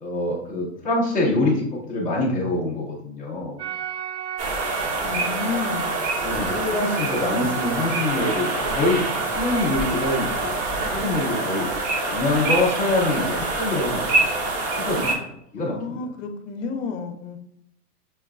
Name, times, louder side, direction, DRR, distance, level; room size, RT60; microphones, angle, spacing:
voice 1, 0.0-3.6 6.2-10.5 10.9-11.7 12.1-14.1 14.8-15.2 15.5-16.0, left 2 dB, ahead, -11 dB, 0.4 m, -25 dB
sound 1, 3.6-10.9, right 9 dB, 80° right, 0.6 m, -34 dB
sound 2, 4.4-15.1, right 2 dB, 45° right, 0.9 m, -26 dB
voice 2, 5.0-6.0 6.5-7.5 15.6-17.4, left 4 dB, 50° left, 6 dB, 0.7 m, -31 dB
6.1 x 2.2 x 2.3 m, 0.74 s
supercardioid pair, 155°, 47 cm